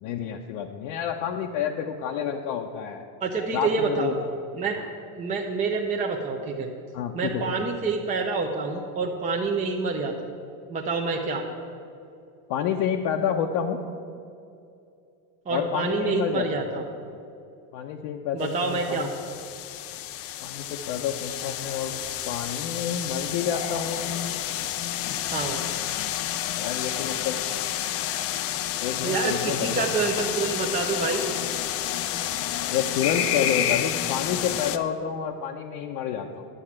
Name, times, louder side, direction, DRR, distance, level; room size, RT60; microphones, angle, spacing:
voice 1, 0.0-3.0 3.5-4.2 6.9-7.7 12.5-13.8 15.5-16.6 17.7-19.1 20.4-21.9 22.3-24.1 26.6-27.4 28.8-30.0 32.7-36.5, left 8 dB, 65° left, 1 dB, 0.9 m, -29 dB
voice 2, 3.2-4.1 4.6-4.8 5.1-6.7 7.1-10.1 10.7-11.4 15.5-16.8 18.3-19.1 25.2-25.6 29.0-31.3, right 4 dB, 15° right, 0 dB, 0.6 m, -27 dB
sound 1, 18.5-34.8, left 11 dB, 35° left, 0.4 m, -30 dB
10.0 x 7.1 x 8.7 m, 2.6 s
cardioid pair, 160°, 43 cm